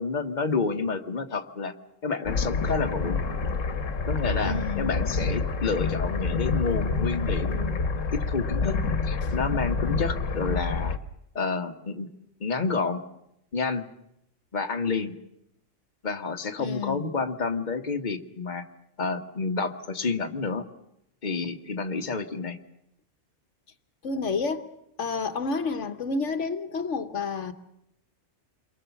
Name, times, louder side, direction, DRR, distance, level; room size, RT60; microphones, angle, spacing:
voice 1, 0.0-1.7 2.0-3.2 4.1-7.8 8.1-8.8 9.0-10.9 11.3-12.1 12.4-13.0 13.5-13.9 14.5-15.1 16.0-18.6 19.0-20.6 21.2-22.6, left 4 dB, 40° left, 1.5 m, -29 dB
sound 1, 2.2-11.0, left 4 dB, 85° left, 1.6 m, -28 dB
voice 2, 4.4-5.0 9.2-9.3 16.6-17.0 24.0-24.7 25.0-27.5, left 4 dB, 70° left, 1.4 m, -30 dB
28.5 x 22.5 x 7.1 m
omnidirectional pair, 1.3 m